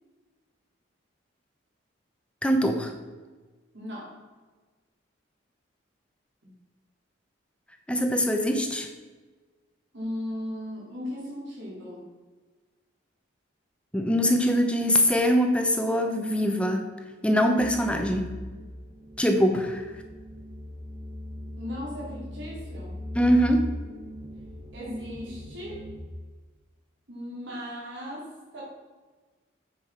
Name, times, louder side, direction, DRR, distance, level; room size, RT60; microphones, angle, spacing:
voice 1, 2.4-2.9 7.9-8.9 13.9-16.9 17.2-18.3 19.2-19.8 23.1-23.7, equal, 5° left, 4 dB, 0.8 m, -23 dB
voice 2, 3.7-4.1 9.9-12.1 21.6-23.0 24.7-25.8 27.1-28.6, left 1 dB, 65° right, -5 dB, 3.0 m, -37 dB
sound 1, 17.6-26.0, left 1 dB, 15° right, 1.1 m, -39 dB
8.8 x 5.6 x 5.6 m, 1.3 s
head